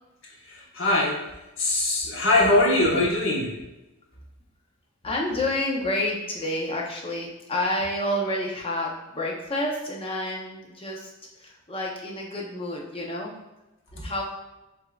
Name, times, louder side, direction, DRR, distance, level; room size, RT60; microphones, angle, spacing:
voice 1, 0.4-1.2 1.6-3.6, left 2 dB, 60° left, -3 dB, 1.1 m, -22 dB
voice 2, 5.0-11.1 11.4-13.3 13.9-14.2, left 1 dB, 25° left, -2 dB, 0.7 m, -29 dB
8.0 x 2.7 x 2.4 m, 1.0 s
head